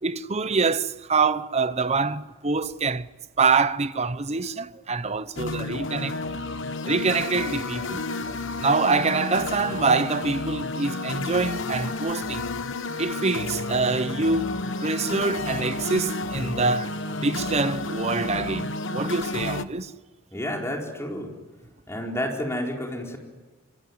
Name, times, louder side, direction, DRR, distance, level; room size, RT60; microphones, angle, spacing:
voice 1, 0.0-3.1 3.4-6.2 6.9-8.1 8.6-12.5 13.0-16.9 17.2-19.9, right 4 dB, 30° right, 0.8 m, -25 dB
sound 1, 5.4-19.6, left 2 dB, 55° left, 1.2 m, -31 dB
voice 2, 20.3-21.3 21.9-23.2, left 1 dB, 10° left, 4.4 m, -30 dB
25.5 x 24.5 x 9.7 m
head